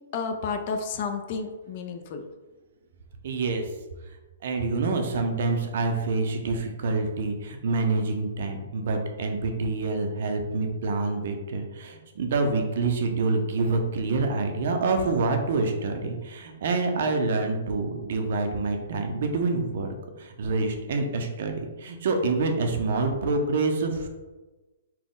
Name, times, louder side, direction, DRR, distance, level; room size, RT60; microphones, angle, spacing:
voice 1, 0.1-2.2, left 5 dB, 35° left, 5 dB, 0.4 m, -31 dB
voice 2, 3.2-3.7 4.4-19.9 20.2-24.1, right 3 dB, 55° right, 4 dB, 0.6 m, -27 dB
4.1 x 2.2 x 3.7 m, 1.2 s
hypercardioid pair, 160°, 0 cm